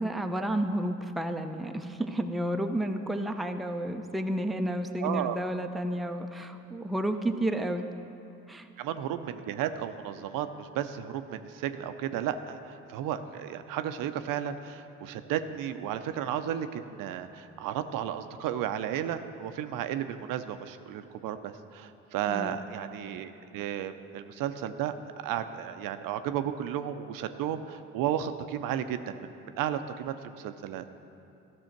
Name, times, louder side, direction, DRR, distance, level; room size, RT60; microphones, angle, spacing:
voice 1, 0.0-7.8 8.5-8.7 22.3-22.6, right 1 dB, ahead, 5 dB, 0.6 m, -31 dB
voice 2, 5.0-5.4 8.8-24.9 25.2-29.3 29.6-30.9, right 10 dB, 65° right, 10 dB, 0.6 m, -33 dB
13.5 x 6.3 x 4.5 m, 2.7 s
hypercardioid pair, 55°, 36 cm